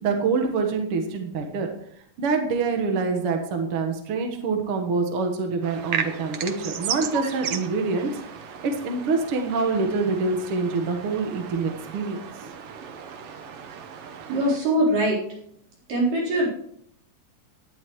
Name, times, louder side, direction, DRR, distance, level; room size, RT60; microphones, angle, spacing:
voice 1, 0.0-1.7 2.2-8.1 8.6-12.2, right 4 dB, 55° right, 3 dB, 1.9 m, -25 dB
sound 1, 5.6-14.6, right 8 dB, 90° right, 1.3 m, -35 dB
voice 2, 14.3-15.2 15.9-16.5, right 1 dB, 75° right, -5 dB, 5.7 m, -22 dB
17.5 x 11.0 x 3.2 m, 0.69 s
omnidirectional pair, 3.9 m